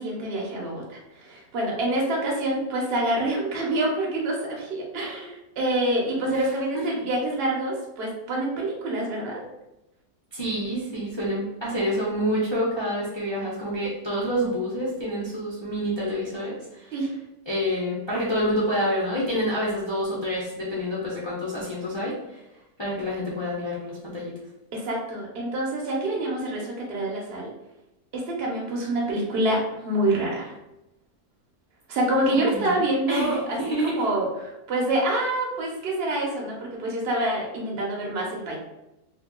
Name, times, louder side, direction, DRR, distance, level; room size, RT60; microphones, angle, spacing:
voice 1, 0.0-9.4 16.9-17.1 24.7-27.5 28.1-30.5 31.9-38.6, right 1 dB, 50° right, -1 dB, 0.9 m, -26 dB
voice 2, 10.3-16.6 16.8-16.9 17.5-22.4 22.8-24.3 32.5-32.8 33.1-34.0, equal, 40° left, -7 dB, 0.3 m, -27 dB
3.0 x 2.2 x 3.6 m, 0.93 s
omnidirectional pair, 1.8 m